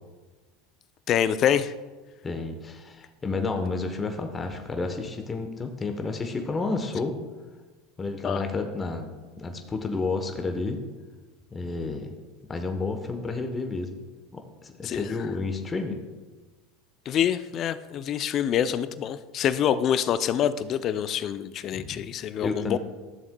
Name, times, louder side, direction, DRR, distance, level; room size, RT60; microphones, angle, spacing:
voice 1, 1.1-1.7 8.2-8.4 14.8-15.1 17.1-22.8, left 9 dB, 45° left, 14 dB, 0.4 m, -26 dB
voice 2, 2.2-7.1 8.0-9.1 9.4-10.8 11.5-12.1 12.5-13.9 14.3-16.0 21.7-22.0 22.4-22.8, left 3 dB, 25° left, 5 dB, 0.9 m, -31 dB
13.0 x 7.0 x 2.2 m, 1.3 s
hypercardioid pair, 90°, 0 cm